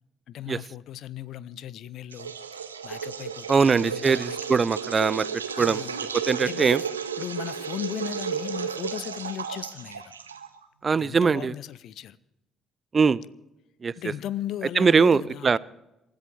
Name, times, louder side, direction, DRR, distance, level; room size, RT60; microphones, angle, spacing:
voice 1, 0.3-2.3 2.8-4.4 5.6-6.0 6.4-6.8 7.2-10.0 10.9-12.2 14.0-15.6, left 11 dB, 55° left, 0.6 m, -36 dB
sound 1, 2.1-10.6, right 7 dB, 85° right, 0.9 m, -33 dB
voice 2, 3.5-5.3 5.6-5.8 6.1-6.8 10.8-11.5 12.9-13.2 13.8-13.9 14.8-15.6, right 5 dB, 35° right, 0.5 m, -21 dB
28.0 x 13.5 x 3.4 m
figure-of-eight pair, 45°, 0 cm